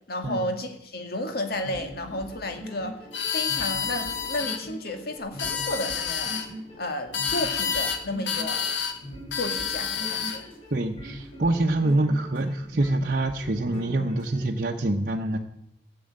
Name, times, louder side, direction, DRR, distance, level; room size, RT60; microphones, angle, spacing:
voice 1, 0.0-3.0 3.3-6.4 6.8-8.7 9.3-10.5, left 1 dB, 60° left, 5 dB, 2.1 m, -32 dB
sound 1, 1.5-14.4, equal, 30° left, 6.6 m, -41 dB
sound 2, 3.1-4.6 5.2-6.5 7.1-8.0 8.3-9.0 9.3-10.4, left 7 dB, 85° left, 1.6 m, -29 dB
voice 2, 10.7-15.4, right 2 dB, 50° right, 1 dB, 0.9 m, -25 dB
14.0 x 7.7 x 8.8 m, 0.76 s
head